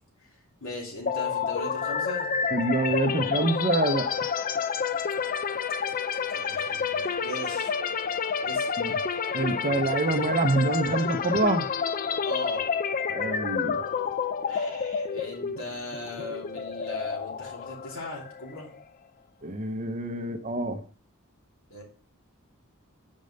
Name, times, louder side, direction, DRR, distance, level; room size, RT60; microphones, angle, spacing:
voice 1, 0.6-2.3 6.3-7.7 8.4-8.7 12.2-12.6 14.5-18.7 21.7-21.8, left 1 dB, 65° left, 3.0 m, -38 dB
sound 1, 1.1-18.8, left 6 dB, 40° left, 0.4 m, -29 dB
voice 2, 2.5-4.3 8.8-8.9 9.3-11.7 13.1-13.9 19.4-20.8, right 2 dB, 35° right, 0.8 m, -26 dB
5.3 x 5.2 x 6.5 m
head